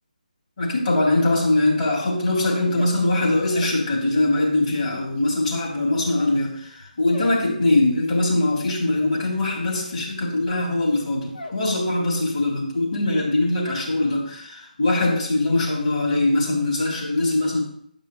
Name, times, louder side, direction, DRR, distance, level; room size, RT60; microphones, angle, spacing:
voice 1, 0.6-17.6, left 2 dB, 55° left, -3 dB, 3.4 m, -22 dB
sound 1, 2.6-4.6 4.9-11.7 12.0-12.5 12.8-13.3, left 2 dB, 75° left, 1.1 m, -43 dB
9.6 x 5.4 x 3.2 m, 0.65 s
figure-of-eight pair, 150°, 5 cm